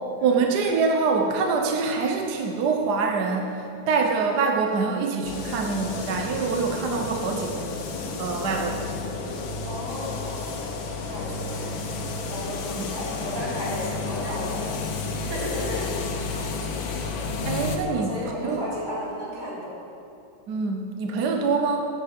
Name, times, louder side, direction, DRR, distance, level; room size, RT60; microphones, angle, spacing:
voice 1, 0.2-7.7 8.2-9.1 17.4-18.6 20.5-21.9, right 4 dB, 60° right, 2 dB, 1.4 m, -25 dB
sound 1, 5.2-17.8, left 4 dB, 80° left, 1.8 m, -31 dB
voice 2, 9.6-10.6 11.1-14.8 15.1-16.4 17.8-19.8, left 1 dB, 45° right, -7 dB, 4.0 m, -34 dB
11.0 x 8.8 x 7.7 m, 2.8 s
omnidirectional pair, 2.1 m